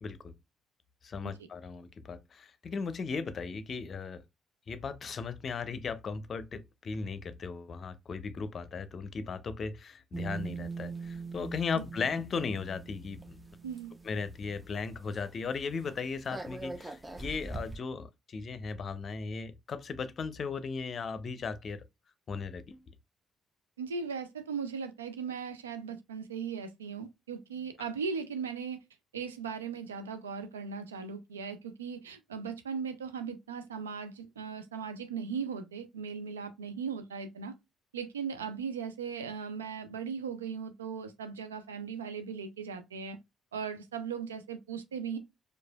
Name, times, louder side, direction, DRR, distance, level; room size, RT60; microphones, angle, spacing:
voice 1, 0.0-0.3 1.0-4.2 4.7-13.4 14.0-21.8 22.3-22.8, left 5 dB, 50° left, 0.5 m, -37 dB
sound 1, 10.1-14.8 15.1-15.3 15.6-17.8, right 4 dB, 20° right, 0.7 m, -42 dB
voice 2, 13.6-13.9 23.8-28.8 29.1-37.6 37.9-43.2 43.5-45.2, right 6 dB, 90° right, 0.4 m, -38 dB
4.8 x 2.3 x 2.3 m
hypercardioid pair, 45°, 0 cm